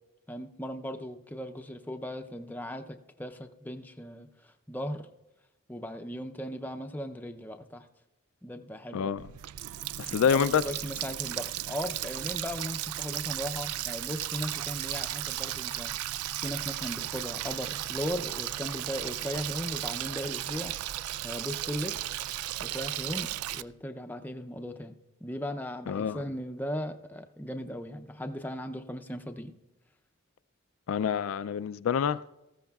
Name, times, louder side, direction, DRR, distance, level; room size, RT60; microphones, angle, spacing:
voice 1, 0.3-5.1 5.7-7.9 8.4-9.0 10.2-15.9 16.4-20.7 21.2-22.0 22.6-24.9 25.2-29.5, equal, 10° left, 0.5 m, -37 dB
voice 2, 8.9-9.3 10.0-10.6 25.9-26.2 30.9-32.3, left 7 dB, 70° left, 0.3 m, -27 dB
Water tap faucet, 9.2-23.6, right 13 dB, 85° right, 0.3 m, -35 dB
18.5 x 14.5 x 2.3 m
head